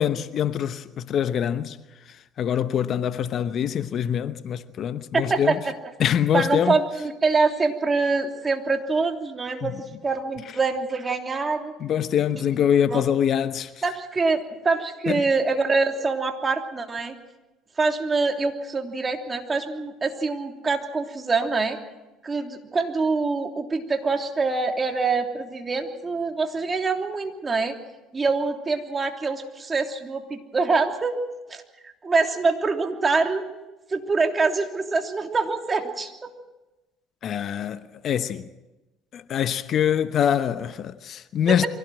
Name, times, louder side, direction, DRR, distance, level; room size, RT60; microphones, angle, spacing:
voice 1, 0.0-1.8 2.4-5.6 6.0-6.7 9.6-9.7 11.8-13.7 15.1-15.2 37.2-38.5 39.1-41.7, left 9 dB, 55° left, 1.0 m, -24 dB
voice 2, 5.1-5.8 6.3-11.7 12.9-13.1 13.8-17.1 17.8-21.8 22.2-27.7 28.1-31.2 31.5-33.4 33.9-36.1 41.5-41.7, right 4 dB, 25° right, 3.1 m, -25 dB
24.0 x 17.5 x 7.7 m
hypercardioid pair, 70°, 0 cm